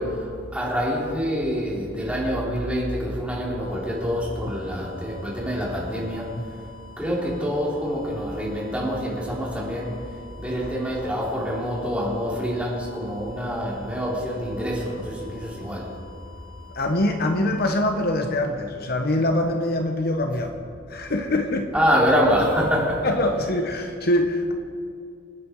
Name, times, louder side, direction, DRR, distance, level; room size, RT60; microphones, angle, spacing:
voice 1, 0.0-6.4 7.0-15.9 21.7-23.1, equal, 5° right, -5 dB, 3.8 m, -26 dB
sound 1, 3.2-19.0, left 7 dB, 15° left, 4.9 m, -49 dB
voice 2, 16.7-20.5 20.9-21.7 23.0-24.5, left 1 dB, 55° left, 5 dB, 1.1 m, -24 dB
27.5 x 9.4 x 4.7 m, 2.3 s
head